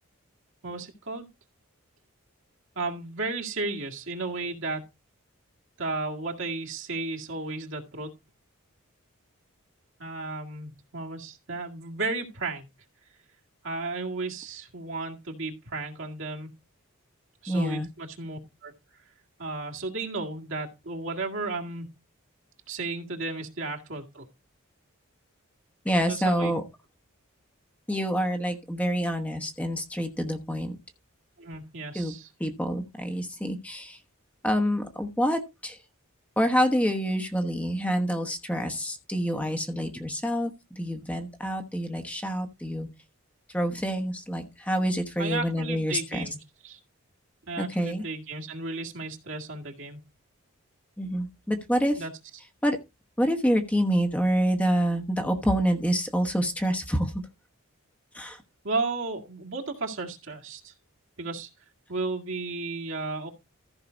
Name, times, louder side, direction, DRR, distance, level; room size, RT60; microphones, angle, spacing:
voice 1, 0.6-1.3 2.8-4.8 5.8-8.1 10.0-12.7 13.6-16.5 17.4-18.7 19.4-21.9 22.7-24.3 26.1-26.5 31.4-32.3 45.2-46.4 46.6-46.8 47.5-50.1 52.0-52.1 58.6-60.7 61.2-61.5 61.9-63.3, right 3 dB, 60° right, 1 dB, 2.0 m, -34 dB
voice 2, 17.5-17.9 25.8-26.6 27.9-30.8 31.9-32.1 32.4-34.0 34.4-35.8 36.4-42.9 43.5-46.3 47.6-48.0 51.0-52.0 52.6-52.8 53.2-57.2 58.1-58.4, equal, 5° left, 5 dB, 1.1 m, -27 dB
14.5 x 5.7 x 3.9 m, 0.25 s
head